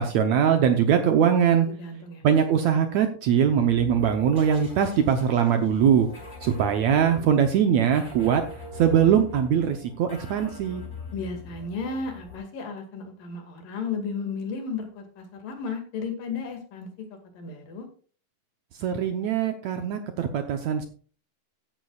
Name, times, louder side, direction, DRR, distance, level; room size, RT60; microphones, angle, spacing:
voice 1, 0.0-1.7 2.2-6.1 6.4-8.4 8.8-10.8 18.8-20.8, right 8 dB, 70° right, 6 dB, 1.8 m, -22 dB
voice 2, 1.7-2.2 11.1-16.9 17.4-17.9, left 4 dB, 75° left, 5 dB, 3.7 m, -34 dB
sound 1, 3.7-12.4, left 3 dB, 20° left, 4.8 m, -42 dB
15.0 x 10.5 x 2.4 m, 0.41 s
omnidirectional pair, 4.0 m